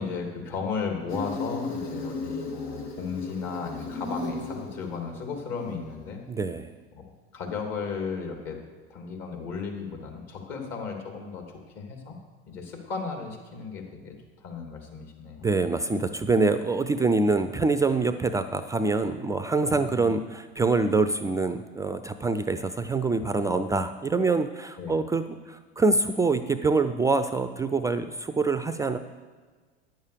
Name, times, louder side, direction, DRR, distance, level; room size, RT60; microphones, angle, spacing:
voice 1, 0.0-6.2 6.9-7.0 7.3-8.6 8.9-11.4 11.7-12.2 12.5-15.5 19.6-20.1 24.8-24.9, left 5 dB, 50° left, 2 dB, 2.8 m, -35 dB
Insect, 1.1-6.1, left 3 dB, 80° left, 1.8 m, -35 dB
voice 2, 6.3-6.7 15.4-29.0, right 3 dB, 10° right, 10 dB, 0.4 m, -25 dB
10.5 x 7.2 x 6.7 m, 1.4 s
hypercardioid pair, 100°, 32 cm